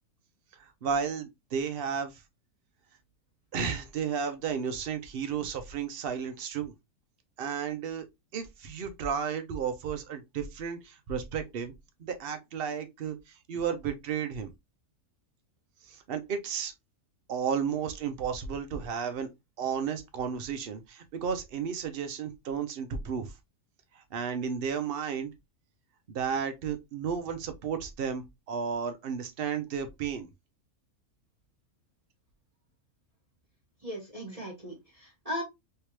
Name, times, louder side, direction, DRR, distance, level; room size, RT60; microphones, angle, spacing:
voice 1, 0.8-2.1 3.5-6.7 7.4-8.1 8.3-11.7 12.0-13.2 13.5-14.5 15.9-16.7 17.3-19.3 19.6-23.3 24.1-25.3 26.1-30.3, right 7 dB, 55° right, 0.6 m, -33 dB
voice 2, 33.8-35.4, equal, 25° right, 1.5 m, -37 dB
3.3 x 2.8 x 2.9 m
omnidirectional pair, 1.6 m